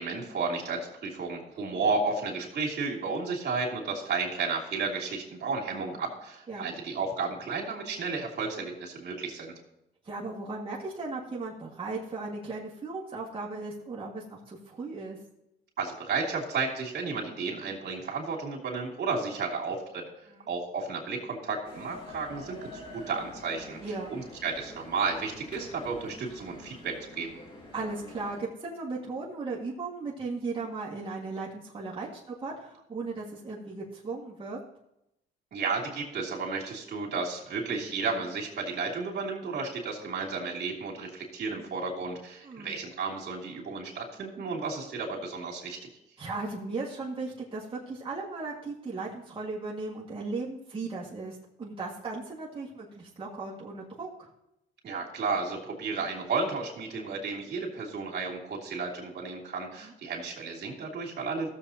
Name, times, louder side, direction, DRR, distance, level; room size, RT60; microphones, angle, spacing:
voice 1, 0.0-9.5 15.8-20.1 20.5-23.8 24.1-27.3 35.5-45.8 54.8-61.5, right 4 dB, 60° right, -2 dB, 2.9 m, -33 dB
voice 2, 10.0-15.2 20.3-20.5 23.8-24.1 27.7-34.6 42.4-42.8 46.2-54.3 59.8-59.9, right 3 dB, 25° right, -5 dB, 2.0 m, -37 dB
sound 1, 21.6-28.4, left 2 dB, 25° left, 2.4 m, -47 dB
15.5 x 7.3 x 2.9 m, 0.84 s
cardioid pair, 90°, 20 cm